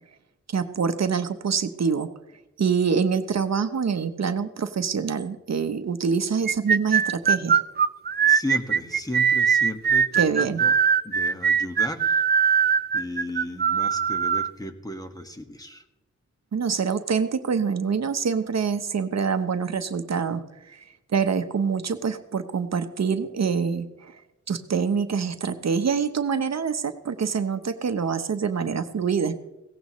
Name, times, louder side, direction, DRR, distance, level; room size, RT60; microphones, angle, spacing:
voice 1, 0.5-2.1 2.6-7.6 10.2-10.6 16.5-20.8 21.1-24.2 24.5-29.4, right 6 dB, 65° right, 9 dB, 0.9 m, -25 dB
sound 1, 6.5-14.5, right 7 dB, 35° right, 0.5 m, -21 dB
voice 2, 8.3-10.7 11.0-12.2 12.9-15.8, left 1 dB, 10° left, 6 dB, 1.6 m, -35 dB
17.0 x 15.0 x 3.1 m, 0.99 s
cardioid pair, 65°, 29 cm